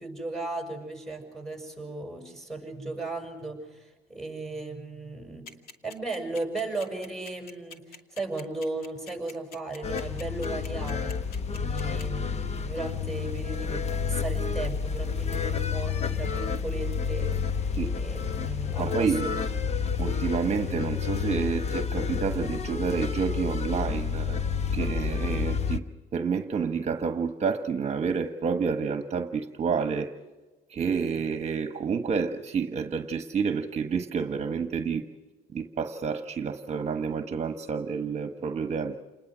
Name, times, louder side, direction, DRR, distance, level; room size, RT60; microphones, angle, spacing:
voice 1, 0.0-5.5 5.8-11.2 11.5-17.3 17.9-19.7, right 2 dB, 5° left, 2 dB, 7.1 m, -36 dB
sound 1, 5.5-12.0, left 5 dB, 65° left, 2.5 m, -45 dB
sound 2, 9.8-25.8, left 6 dB, 40° left, 1.1 m, -30 dB
voice 2, 18.8-19.3 20.0-24.4 24.7-25.8 26.1-30.1 30.7-35.0 35.5-39.0, right 6 dB, 40° right, 7 dB, 1.3 m, -29 dB
29.0 x 20.5 x 6.3 m, 1.2 s
cardioid pair, 110°, 17 cm